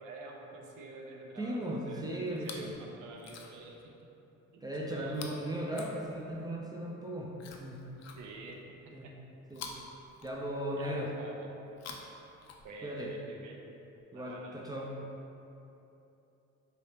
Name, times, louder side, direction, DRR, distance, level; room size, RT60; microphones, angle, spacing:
voice 1, 0.0-3.9 4.5-4.6 4.9-5.5 8.2-8.6 10.7-11.5 12.6-13.6 14.1-14.7, right 3 dB, 80° right, 1 dB, 0.5 m, -48 dB
voice 2, 1.4-2.7 4.6-7.3 7.6-7.8 8.9-9.1 9.5-9.7 10.2-11.1 12.8-13.1 14.1-14.9, right 1 dB, 15° right, -3 dB, 0.3 m, -37 dB
Chewing mastication, 2.3-2.8 3.1-3.8 5.1-6.5 7.4-8.6 9.5-10.8 11.6-13.0 14.0-14.1, left 5 dB, 60° left, 0.4 m, -49 dB
2.8 x 2.7 x 3.3 m, 2.9 s
cardioid pair, 90°, 30 cm